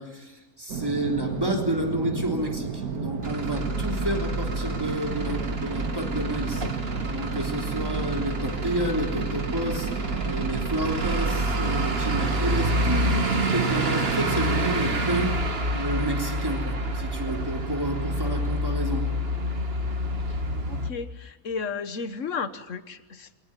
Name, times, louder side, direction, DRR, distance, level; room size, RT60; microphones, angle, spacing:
voice 1, 0.0-6.7 7.1-19.2, right 1 dB, 15° right, 2 dB, 3.4 m, -30 dB
sound 1, 0.7-15.3, right 6 dB, 85° right, 2.1 m, -33 dB
Truck / Idling, 3.2-20.9, right 1 dB, 45° right, 1.9 m, -28 dB
voice 2, 20.7-23.4, left 5 dB, 60° left, 12 dB, 1.6 m, -33 dB
23.5 x 18.0 x 9.9 m, 1.2 s
omnidirectional pair, 1.5 m